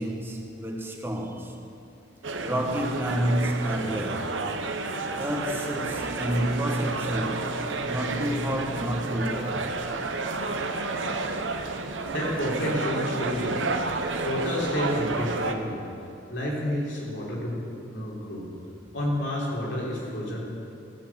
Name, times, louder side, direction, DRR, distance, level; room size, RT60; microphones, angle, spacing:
voice 1, 0.0-1.6 2.4-4.3 5.2-7.5 7.9-9.7, equal, 10° right, 1.2 m, -29 dB
sound 1, 2.2-15.6, right 3 dB, 80° right, 0.9 m, -31 dB
voice 2, 12.1-13.8 14.2-15.8 16.3-17.6 17.9-18.5 18.9-20.4, left 1 dB, 70° left, 3.4 m, -30 dB
15.0 x 8.0 x 7.4 m
head